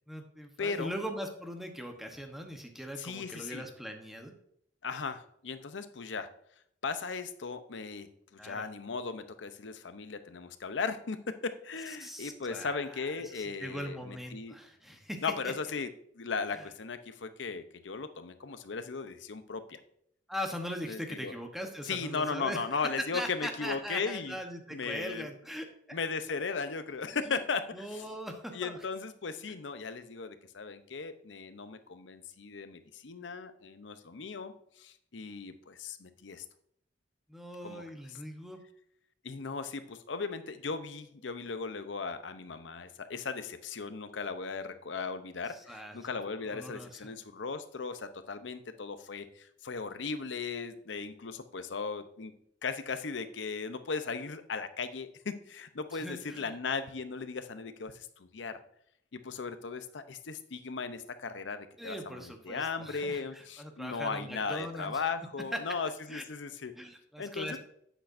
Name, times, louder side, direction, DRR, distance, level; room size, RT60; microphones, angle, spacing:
voice 1, 0.1-4.3 8.4-8.7 12.0-15.5 20.3-22.8 23.1-25.7 27.1-27.4 27.7-28.8 37.3-38.6 45.5-46.0 46.5-47.1 55.9-56.5 61.8-65.0 66.1-66.2 66.8-67.6, equal, ahead, 3 dB, 1.0 m, -41 dB
voice 2, 0.6-0.9 3.0-3.6 4.8-6.3 6.8-8.1 8.4-14.6 15.2-15.9 16.2-19.8 20.8-21.3 21.9-24.4 24.7-25.3 25.9-27.7 27.9-28.0 28.5-36.4 37.6-37.8 39.2-52.3 52.6-58.6 59.1-66.7 67.2-67.6, left 4 dB, 80° left, 10 dB, 0.7 m, -37 dB
10.0 x 8.1 x 2.6 m, 0.70 s
head